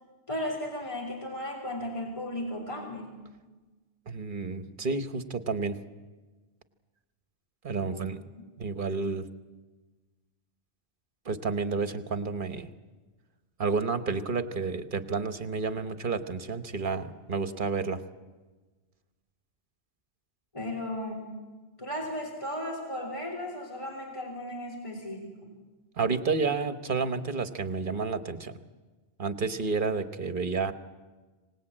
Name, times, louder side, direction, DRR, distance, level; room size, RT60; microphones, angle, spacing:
voice 1, 0.3-3.2 7.8-8.1 20.5-21.4 21.8-25.6, left 1 dB, 30° left, -1 dB, 3.3 m, -35 dB
voice 2, 4.1-5.8 7.6-8.2 8.6-9.3 11.2-12.7 13.6-18.0 26.0-28.6 29.2-30.7, right 4 dB, 55° right, 10 dB, 1.3 m, -30 dB
26.0 x 18.5 x 8.8 m, 1.3 s
omnidirectional pair, 1.1 m